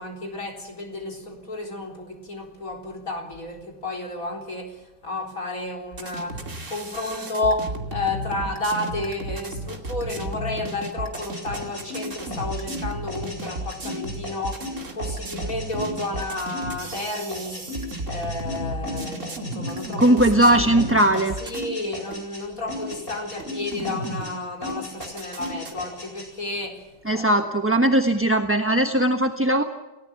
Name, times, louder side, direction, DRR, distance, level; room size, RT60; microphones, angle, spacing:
voice 1, 0.0-17.7 18.1-20.8 21.4-27.4, left 2 dB, 50° left, 4.3 m, -31 dB
sound 1, 5.9-21.7 22.1-22.2 22.9-23.0 23.4-24.3 24.7-25.7, right 1 dB, 45° right, 2.9 m, -34 dB
sound 2, 11.1-20.5 20.8-22.4 22.7-24.3 24.6-26.3, left 1 dB, 35° left, 8.4 m, -36 dB
voice 2, 20.0-21.3 27.1-29.6, right 1 dB, 10° right, 1.0 m, -19 dB
29.5 x 18.5 x 7.1 m
omnidirectional pair, 1.8 m